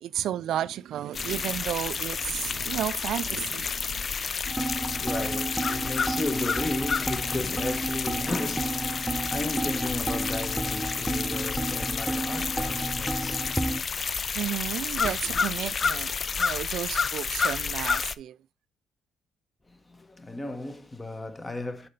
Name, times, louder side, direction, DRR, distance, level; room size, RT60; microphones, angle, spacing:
voice 1, 0.0-4.4 14.3-18.4, right 11 dB, 70° right, 0.3 m, -33 dB
sound 1, 1.1-18.1, left 5 dB, 45° left, 0.4 m, -30 dB
voice 2, 4.5-14.3 15.0-15.1 19.7-21.9, left 2 dB, 20° left, 1.1 m, -35 dB
sound 2, 4.5-13.8, right 2 dB, 5° right, 0.7 m, -32 dB
6.5 x 4.3 x 5.5 m
supercardioid pair, 75°, 0 cm